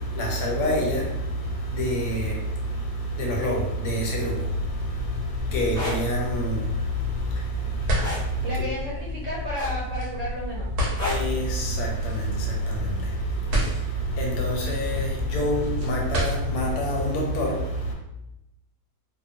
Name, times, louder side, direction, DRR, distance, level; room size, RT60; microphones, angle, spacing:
voice 1, 0.0-8.7 11.0-17.9, right 1 dB, 75° left, 1.1 m, -27 dB
sound 1, 4.4-16.7, left 2 dB, 75° right, 1.3 m, -31 dB
sound 2, 5.7-6.0 8.0-8.3 9.6-10.0 11.0-11.3 12.7-12.9, left 1 dB, 5° left, 0.9 m, -31 dB
voice 2, 8.4-10.7, equal, 55° right, 1.2 m, -32 dB
2.9 x 2.1 x 2.4 m
omnidirectional pair, 1.6 m